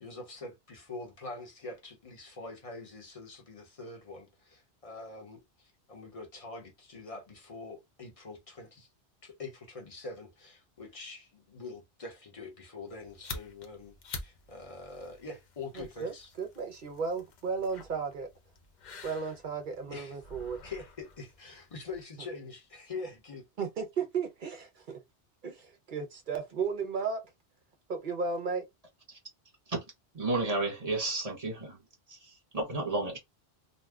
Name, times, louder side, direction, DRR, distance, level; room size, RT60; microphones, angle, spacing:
voice 1, 0.0-8.9 9.2-14.0 14.2-16.3 19.9-20.2 20.6-23.5, left 3 dB, 30° left, 1.0 m, -44 dB
sound 1, 12.9-22.0, left 4 dB, 50° left, 0.6 m, -48 dB
voice 2, 15.8-18.3 19.0-20.6 23.6-25.0 25.4-27.2 27.9-28.7, right 5 dB, 55° right, 0.7 m, -34 dB
voice 3, 30.1-31.8 32.1-33.2, right 2 dB, 35° right, 1.2 m, -32 dB
2.6 x 2.2 x 3.5 m
omnidirectional pair, 1.2 m